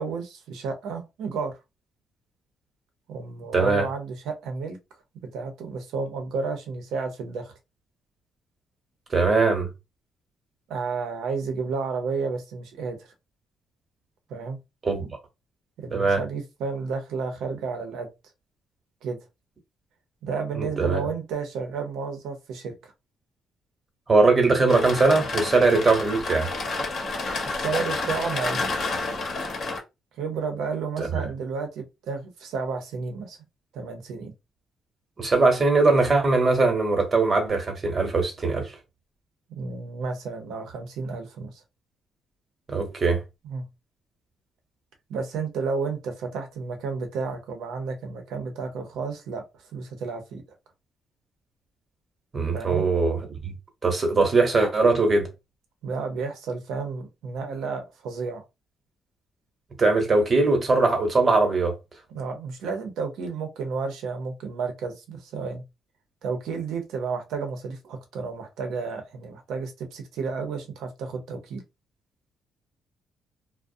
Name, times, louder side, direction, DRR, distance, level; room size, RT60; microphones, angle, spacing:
voice 1, 0.0-1.5 3.1-4.8 5.2-7.5 10.7-13.1 14.3-14.6 15.8-18.1 19.0-19.2 20.2-22.9 27.4-28.9 30.2-33.4 33.7-34.3 39.5-41.6 43.4-43.7 45.1-49.4 49.7-50.4 52.5-52.8 55.8-58.4 62.1-65.6 66.2-71.6, right 4 dB, 85° right, 0.6 m, -32 dB
voice 2, 3.5-3.9 9.1-9.7 14.8-15.1 15.9-16.2 20.6-21.0 24.1-26.5 31.0-31.2 35.2-38.7 42.7-43.2 52.3-53.5 53.8-55.3 59.8-61.7, right 3 dB, 35° right, 0.9 m, -21 dB
sound 1, 24.7-29.8, left 3 dB, 60° left, 0.8 m, -29 dB
2.4 x 2.0 x 2.5 m
cardioid pair, 90°, 0 cm